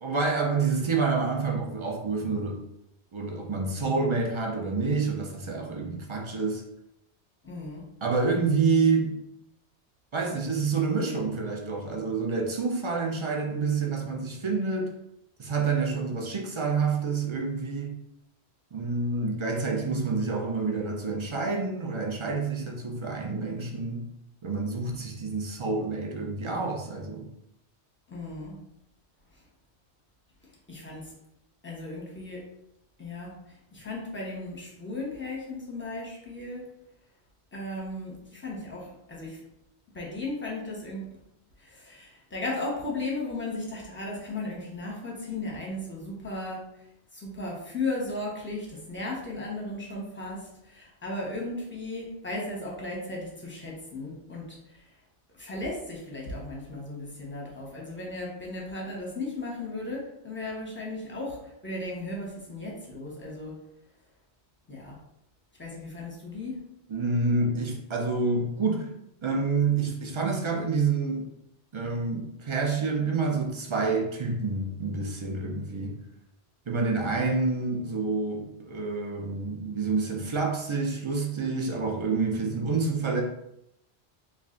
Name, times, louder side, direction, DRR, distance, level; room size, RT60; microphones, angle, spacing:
voice 1, 0.0-2.6 3.1-6.6 8.0-9.2 10.1-14.9 15.4-18.0 18.7-24.1 24.4-27.3 66.9-68.9 69.2-71.3 71.7-76.0 76.7-83.2, right 4 dB, 45° right, 0 dB, 0.4 m, -28 dB
voice 2, 7.4-7.8 28.1-28.6 30.7-31.1 31.6-32.5 33.0-36.7 37.5-39.4 39.9-41.1 41.6-46.8 47.1-54.9 55.3-63.6 64.7-65.0 65.6-66.7, left 2 dB, 10° left, -3 dB, 0.8 m, -36 dB
3.2 x 2.4 x 3.8 m, 0.81 s
omnidirectional pair, 1.1 m